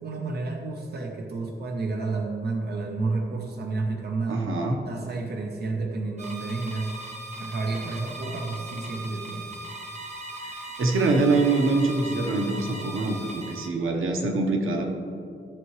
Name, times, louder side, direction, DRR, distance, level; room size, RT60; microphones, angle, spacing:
voice 1, 0.0-4.5 4.8-6.9 7.4-9.5, right 3 dB, 55° right, 2 dB, 0.9 m, -30 dB
voice 2, 4.3-4.8 10.8-14.9, right 3 dB, 90° right, 2 dB, 1.1 m, -24 dB
sound 1, 6.2-13.7, right 1 dB, 35° right, 1.1 m, -39 dB
14.0 x 6.9 x 3.2 m, 2.4 s
wide cardioid pair, 150°, 20 cm